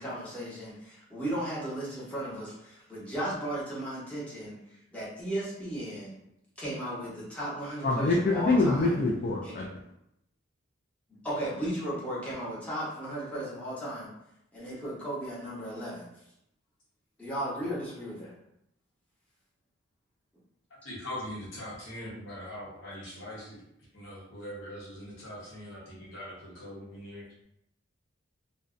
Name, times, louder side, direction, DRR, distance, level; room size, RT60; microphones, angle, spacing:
voice 1, 0.0-4.6 4.9-6.2 6.6-9.0 9.4-9.5 11.2-14.1 14.5-16.1 17.2-18.3, right 1 dB, 5° left, -9 dB, 0.9 m, -35 dB
voice 2, 7.8-9.7, left 2 dB, 45° left, -2 dB, 0.3 m, -25 dB
voice 3, 20.8-23.6 23.9-27.3, left 1 dB, 70° left, -5 dB, 0.9 m, -41 dB
2.6 x 2.1 x 2.4 m, 0.79 s
head